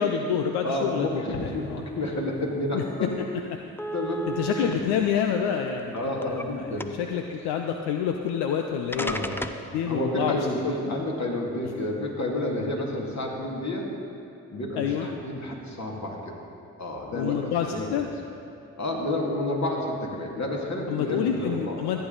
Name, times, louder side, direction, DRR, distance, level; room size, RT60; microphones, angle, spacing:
voice 1, 0.0-1.8 2.7-3.1 4.3-9.1 9.7-10.4 10.6-10.9 14.8-15.1 17.1-18.1 20.9-22.0, left 8 dB, 80° left, 4 dB, 0.6 m, -28 dB
voice 2, 0.6-3.1 3.9-4.3 4.5-4.8 5.9-6.9 9.0-13.9 14.5-16.4 16.8-18.0 18.8-21.8, left 1 dB, 45° left, -1 dB, 2.4 m, -30 dB
sound 1, 2.7-2.8 3.1-3.2 3.8-4.7 5.6-6.5 6.8-7.2 8.3-8.4 8.9-9.7, right 1 dB, 5° left, 0.6 m, -33 dB
14.5 x 9.1 x 4.0 m, 2.8 s
hypercardioid pair, 40°, 39 cm